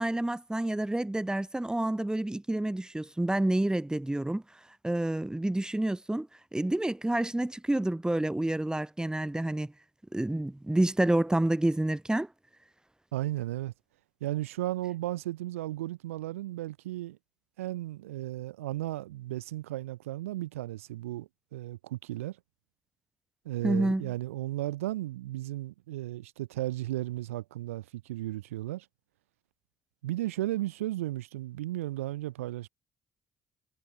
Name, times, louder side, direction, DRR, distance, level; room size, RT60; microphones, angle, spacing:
voice 1, 0.0-4.4 4.8-6.3 6.5-9.7 10.1-12.3 23.6-24.1, right 1 dB, 10° right, 5.2 m, -28 dB
voice 2, 13.1-13.7 14.2-17.2 17.6-22.4 23.4-28.9 30.0-32.7, right 15 dB, 85° right, 3.0 m, -35 dB
hypercardioid pair, 50°, 7 cm